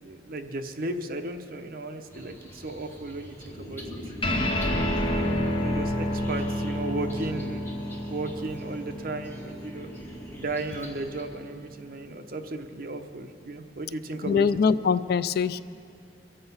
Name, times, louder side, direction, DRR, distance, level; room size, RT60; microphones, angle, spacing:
voice 1, 0.0-3.8 5.0-5.3 5.6-7.7 8.0-9.9 10.3-14.5, right 2 dB, 55° right, 5 dB, 0.9 m, -35 dB
sound 1, 2.1-11.2, left 1 dB, 15° left, 2.0 m, -44 dB
sound 2, 4.2-11.0, equal, 30° left, 1.0 m, -29 dB
voice 2, 14.2-15.6, left 6 dB, 60° left, 15 dB, 0.3 m, -23 dB
23.5 x 7.9 x 5.6 m, 2.4 s
head